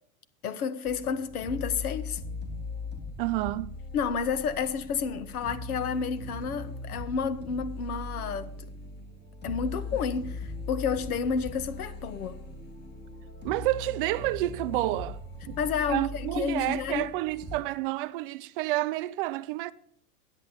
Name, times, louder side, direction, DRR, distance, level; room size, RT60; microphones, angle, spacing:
voice 1, 0.4-2.2 3.9-8.5 9.4-12.4 15.6-17.1, left 6 dB, 70° left, 1.3 m, -30 dB
sound 1, 0.8-17.6, left 2 dB, 20° left, 2.5 m, -40 dB
voice 2, 3.2-3.7 13.4-15.2 15.5-15.6 15.9-19.7, right 17 dB, 40° right, 0.4 m, -29 dB
10.5 x 8.0 x 7.0 m
hypercardioid pair, 105°, 45 cm